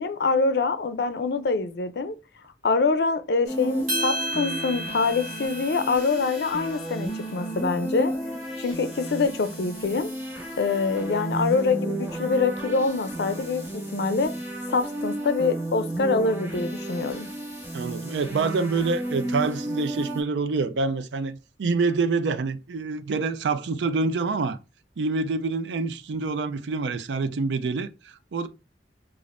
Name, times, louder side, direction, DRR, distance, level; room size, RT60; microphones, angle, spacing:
voice 1, 0.0-2.1 2.6-8.1 8.6-10.1 10.6-14.3 14.7-17.3, left 4 dB, 65° left, 0.4 m, -25 dB
sound 1, 3.4-20.2, right 1 dB, 10° right, 1.7 m, -33 dB
sound 2, 3.9-8.3, right 1 dB, 45° right, 1.4 m, -34 dB
voice 2, 17.7-24.6 25.0-28.5, right 4 dB, 80° right, 0.4 m, -26 dB
5.1 x 2.4 x 2.5 m
head